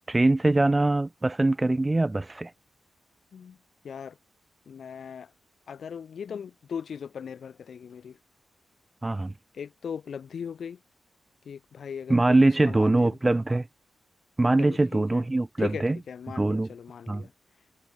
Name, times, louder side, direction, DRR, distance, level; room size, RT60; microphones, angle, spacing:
voice 1, 0.1-2.5 9.0-9.3 12.1-13.7 14.4-16.0 16.4-16.7 17.1-17.3, right 2 dB, 20° right, 1.0 m, -23 dB
voice 2, 3.8-4.2 4.7-5.3 5.7-8.2 9.5-10.8 11.4-13.2 14.6-15.3 15.6-17.3, left 7 dB, 70° left, 7.6 m, -38 dB
cardioid pair, 100°, 0 cm